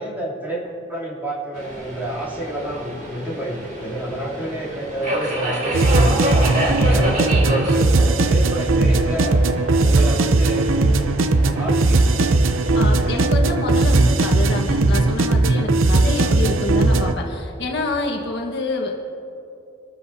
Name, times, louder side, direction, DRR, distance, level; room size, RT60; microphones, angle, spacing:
voice 1, 0.0-6.3 6.8-9.5 9.8-10.9 11.5-12.4, right 1 dB, 10° right, -7 dB, 3.0 m, -30 dB
Subway metro underground, 1.5-13.1, right 1 dB, 45° right, 4.0 m, -29 dB
sound 1, 5.7-17.1, right 2 dB, 80° right, 0.7 m, -18 dB
voice 2, 6.9-7.4 12.7-19.0, left 2 dB, 60° left, 1 dB, 1.5 m, -27 dB
24.0 x 13.0 x 2.8 m, 2.8 s
head